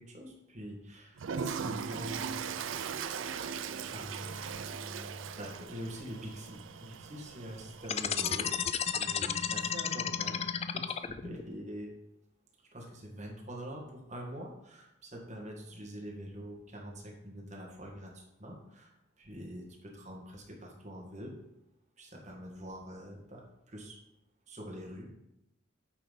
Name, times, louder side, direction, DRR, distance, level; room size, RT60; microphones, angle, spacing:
voice 1, 0.0-2.4 3.3-3.5 3.9-8.5 8.8-11.9 12.7-21.3 22.0-24.0 24.5-25.1, equal, 35° right, -1 dB, 1.6 m, -45 dB
Toilet flush, 1.2-8.7, right 6 dB, 85° right, 0.5 m, -39 dB
sound 1, 7.8-11.4, left 7 dB, 30° left, 0.3 m, -32 dB
8.7 x 4.0 x 5.3 m, 0.85 s
head